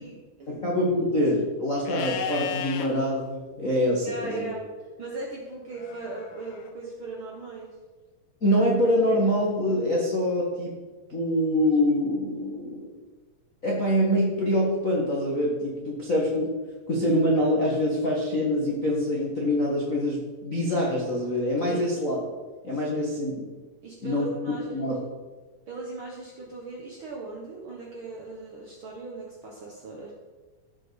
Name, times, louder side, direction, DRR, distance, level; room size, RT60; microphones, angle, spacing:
voice 1, 0.0-0.6 4.0-7.8 21.7-21.8 22.9-23.1 23.8-24.9 25.7-30.1, right 3 dB, 80° right, -2 dB, 1.1 m, -38 dB
voice 2, 0.6-4.5 8.4-10.7 11.1-12.9 13.6-16.5 16.9-22.2 22.6-23.4 24.0-24.3 24.7-24.9, equal, 60° left, -5 dB, 0.8 m, -25 dB
Livestock farm animals working animals, 1.8-2.9 5.7-6.7, left 8 dB, 80° left, 2.5 m, -35 dB
14.5 x 5.6 x 4.8 m, 1.3 s
omnidirectional pair, 4.2 m